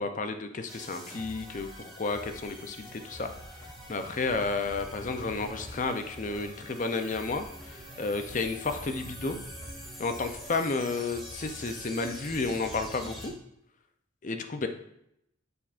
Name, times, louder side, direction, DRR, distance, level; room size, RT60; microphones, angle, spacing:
voice 1, 0.0-3.3 3.9-9.4 10.0-13.3 14.2-14.7, left 3 dB, 40° left, 7 dB, 0.5 m, -32 dB
sound 1, 0.7-13.3, equal, ahead, 1.6 m, -44 dB
6.8 x 5.6 x 2.5 m, 0.79 s
head